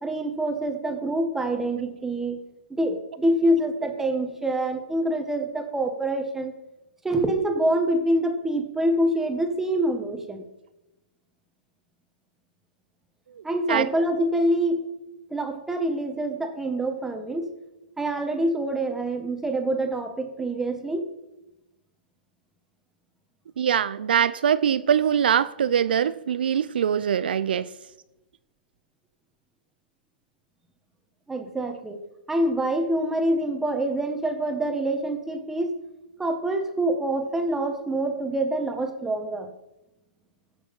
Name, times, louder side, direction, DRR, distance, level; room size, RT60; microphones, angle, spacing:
voice 1, 0.0-2.4 2.7-6.5 7.0-10.5 13.4-14.9 15.3-17.5 18.0-21.1 31.3-32.0 32.3-35.8 36.2-39.5, right 1 dB, 5° right, 1.4 m, -26 dB
voice 2, 23.6-27.7, right 8 dB, 75° right, 0.5 m, -23 dB
15.0 x 6.4 x 5.4 m
hypercardioid pair, 135°, 5 cm